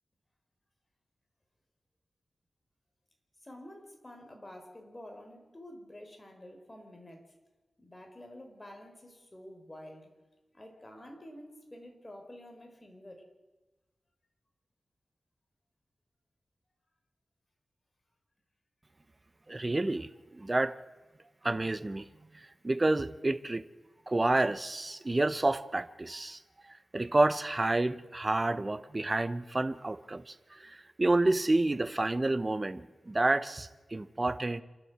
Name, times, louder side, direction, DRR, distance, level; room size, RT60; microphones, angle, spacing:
voice 1, 3.4-7.3 7.8-10.1 10.5-13.3, left 1 dB, 20° left, 3 dB, 4.7 m, -49 dB
voice 2, 19.5-20.7 21.4-22.0 22.6-23.6 24.1-26.4 26.9-34.6, right 2 dB, 30° right, 12 dB, 1.0 m, -29 dB
27.0 x 12.0 x 8.1 m, 1.2 s
wide cardioid pair, 85°, 0 cm